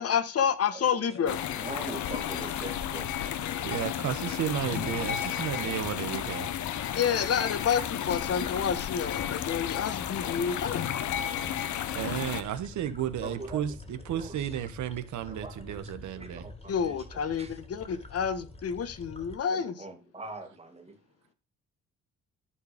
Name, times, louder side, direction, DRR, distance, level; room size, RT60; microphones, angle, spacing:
voice 1, 0.0-1.4 6.9-10.8 16.7-19.7, left 7 dB, 50° left, 1.2 m, -29 dB
voice 2, 0.7-3.1 5.6-5.7 13.2-13.6 14.1-14.5 15.3-15.8 16.1-17.1 17.4-17.6 19.5-21.0, right 2 dB, 20° right, 2.1 m, -43 dB
sound 1, 1.3-12.4, left 10 dB, 70° left, 0.8 m, -33 dB
sound 2, 2.0-19.4, left 2 dB, 20° left, 2.1 m, -47 dB
voice 3, 3.6-6.6 11.9-16.5, right 10 dB, 70° right, 1.1 m, -33 dB
11.5 x 4.3 x 4.9 m
cardioid pair, 90°, 30 cm